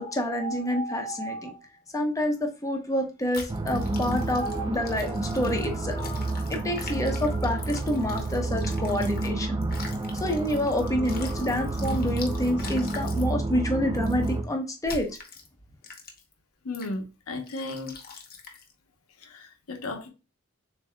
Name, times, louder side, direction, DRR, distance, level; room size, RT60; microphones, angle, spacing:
voice 1, 0.0-1.6 1.9-15.1, left 1 dB, 15° left, 0.7 m, -28 dB
sound 1, 3.3-9.3 9.6-13.3 13.9-14.3 14.8-15.5 15.8-16.3 16.7-16.9 17.5-18.7, left 4 dB, 45° left, 0.9 m, -43 dB
sound 2, 3.5-14.4, right 2 dB, 20° right, 0.3 m, -30 dB
voice 2, 16.6-17.9 19.2-20.1, left 2 dB, 75° left, 0.9 m, -35 dB
6.9 x 2.7 x 2.2 m
head